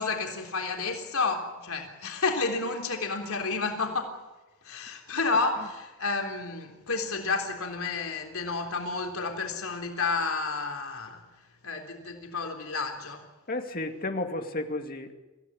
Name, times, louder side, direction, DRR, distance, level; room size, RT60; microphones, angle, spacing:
voice 1, 0.0-4.2 4.6-11.2 11.6-13.2, left 4 dB, 85° left, 3 dB, 3.6 m, -30 dB
voice 2, 13.5-15.1, left 2 dB, 45° left, 5 dB, 2.5 m, -32 dB
26.0 x 16.0 x 9.8 m, 1.1 s
head